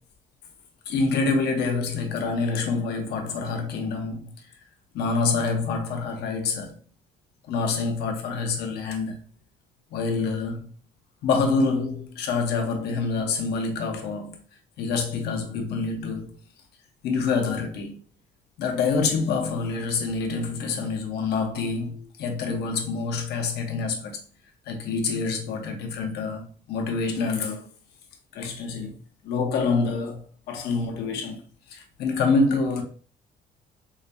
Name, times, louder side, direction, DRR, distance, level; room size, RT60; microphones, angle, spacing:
voice 1, 0.9-4.3 4.9-6.8 7.5-9.2 9.9-10.7 11.2-14.4 14.8-16.4 17.0-18.0 18.6-24.2 24.7-27.7 28.3-29.0 29.2-31.4 31.7-32.8, left 4 dB, 75° left, 0.9 m, -26 dB
5.0 x 2.2 x 2.6 m
cardioid pair, 110°, 17 cm